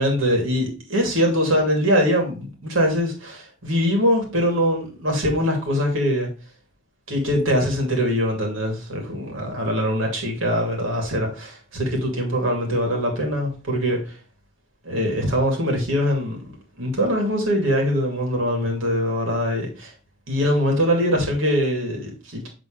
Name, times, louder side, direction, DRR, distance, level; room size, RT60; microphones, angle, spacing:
voice 1, 0.0-6.3 7.1-14.1 14.8-16.4 16.8-19.9 20.3-22.5, equal, 75° right, 2.6 m, -22 dB
8.1 x 3.9 x 3.3 m
head